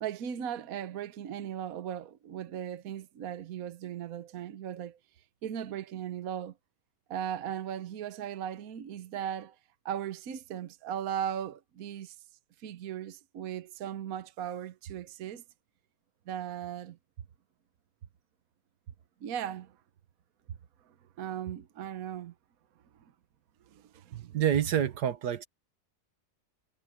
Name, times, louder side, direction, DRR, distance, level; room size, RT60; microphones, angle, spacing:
voice 1, 0.0-5.0 5.4-6.5 7.1-9.6 9.8-12.2 12.6-15.4 16.3-17.0 19.2-19.8 20.9-22.3 23.7-24.4, right 9 dB, 60° right, 1.3 m, -37 dB
voice 2, 24.3-25.5, right 9 dB, 80° right, 1.7 m, -27 dB
omnidirectional pair, 1.7 m